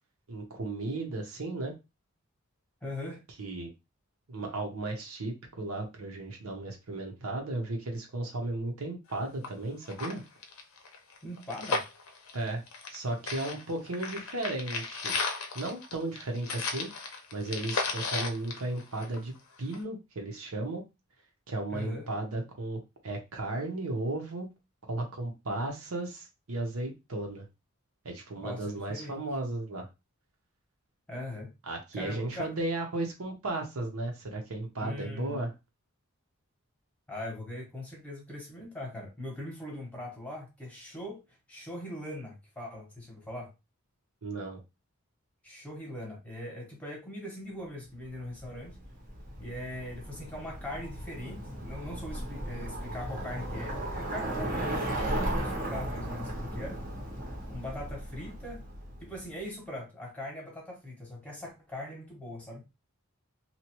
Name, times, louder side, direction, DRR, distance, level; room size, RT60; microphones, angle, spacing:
voice 1, 0.3-1.7 3.4-3.7 4.3-10.2 12.3-12.6 12.9-15.1 15.5-16.9 17.3-20.8 21.5-24.5 24.9-27.4 28.0-29.9 31.7-35.5 44.2-44.6, right 2 dB, 80° right, 2 dB, 0.8 m, -35 dB
voice 2, 2.8-3.2 11.2-11.9 21.7-22.1 28.4-29.2 31.1-31.5 31.9-32.5 34.8-35.4 37.1-43.5 45.4-48.8 49.4-56.8 57.5-58.6 59.0-62.6, left 1 dB, 5° left, -1 dB, 0.8 m, -41 dB
sound 1, 9.1-9.2 9.4-9.5 9.8-13.0 13.3-19.4 19.7-19.8, left 4 dB, 80° left, 0.6 m, -35 dB
Bicycle, 48.3-59.2, right 1 dB, 40° right, 0.7 m, -36 dB
2.8 x 2.2 x 2.9 m, 0.25 s
head